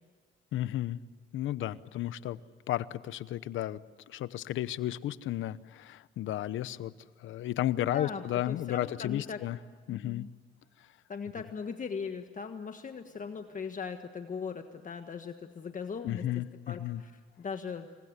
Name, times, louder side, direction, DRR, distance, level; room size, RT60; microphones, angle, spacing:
voice 1, 0.5-1.0 1.3-2.4 2.7-3.8 4.1-6.9 7.2-9.6 9.9-10.3 16.0-17.0, left 13 dB, 80° left, 16 dB, 0.9 m, -33 dB
voice 2, 7.7-9.4 9.9-10.3 11.1-16.3 16.7-17.9, left 6 dB, 40° left, 6 dB, 1.5 m, -39 dB
27.5 x 22.5 x 8.2 m, 1.5 s
cardioid pair, 90°, 20 cm